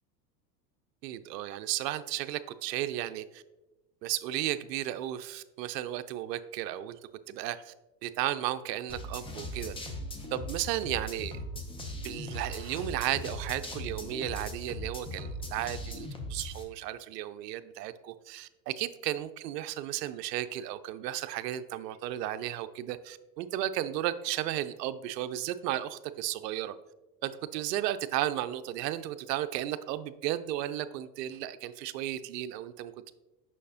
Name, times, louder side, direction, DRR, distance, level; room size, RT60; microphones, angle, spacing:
voice 1, 1.0-3.4 4.0-7.0 7.3-7.7 8.0-9.7 10.3-11.4 12.0-26.7 27.2-33.1, right 13 dB, 75° right, 12 dB, 0.6 m, -34 dB
sound 1, 8.9-16.6, equal, 10° left, 0.5 m, -39 dB
6.4 x 5.6 x 2.7 m, 1.1 s
supercardioid pair, 120°, 49 cm